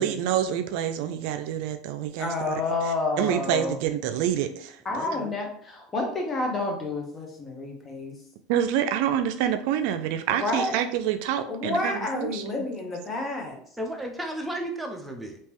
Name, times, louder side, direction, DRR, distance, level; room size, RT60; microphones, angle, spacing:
voice 1, 0.0-2.6 3.2-4.8 8.5-12.6, right 10 dB, 70° right, 8 dB, 0.4 m, -27 dB
voice 2, 2.2-3.8 4.8-8.1 10.4-10.8 11.5-13.6, left 2 dB, 25° left, 1 dB, 1.0 m, -29 dB
voice 3, 4.9-5.3 13.8-15.4, right 1 dB, 5° right, 2 dB, 0.7 m, -33 dB
3.6 x 2.8 x 3.0 m, 0.64 s
supercardioid pair, 115°, 0 cm